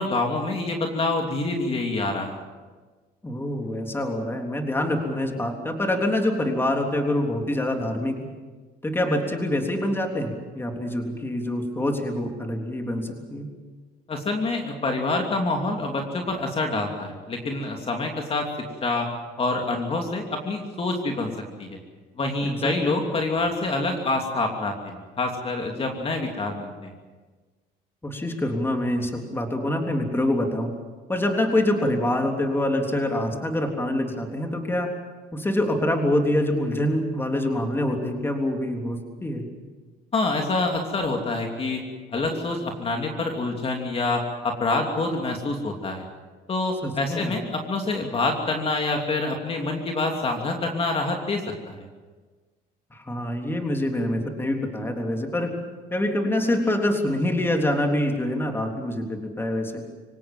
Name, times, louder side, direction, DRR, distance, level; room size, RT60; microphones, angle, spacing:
voice 1, 0.0-2.4 14.1-18.5 18.8-19.1 19.4-21.3 21.6-21.8 22.2-27.0 40.1-41.8 42.1-46.0 46.5-51.9, left 2 dB, 35° left, 2 dB, 3.0 m, -26 dB
voice 2, 3.2-8.2 8.8-13.5 22.4-23.0 28.0-30.7 31.1-34.9 35.3-39.4 46.8-47.4 52.9-55.6 55.9-59.8, left 1 dB, 15° left, 3 dB, 3.5 m, -25 dB
26.0 x 17.5 x 7.6 m, 1.4 s
cardioid pair, 110°, 17 cm